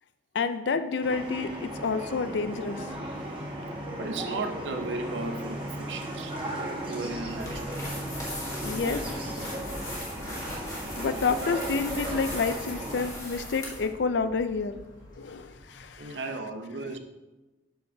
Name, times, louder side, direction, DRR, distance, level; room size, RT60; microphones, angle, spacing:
voice 1, 0.3-2.8 8.6-9.0 11.0-14.8 15.2-16.2, left 4 dB, 75° left, 11 dB, 0.4 m, -29 dB
sound 1, 1.0-13.0, right 1 dB, 30° right, 1.3 m, -36 dB
voice 2, 4.0-6.4 6.7-7.8 9.4-9.5 16.0-17.0, right 3 dB, 90° right, 6 dB, 0.7 m, -35 dB
sound 2, 7.0-16.0, left 1 dB, 50° left, 1.5 m, -46 dB
sound 3, 7.3-13.9, left 1 dB, 20° left, 1.4 m, -38 dB
7.7 x 6.5 x 2.7 m, 1.1 s
head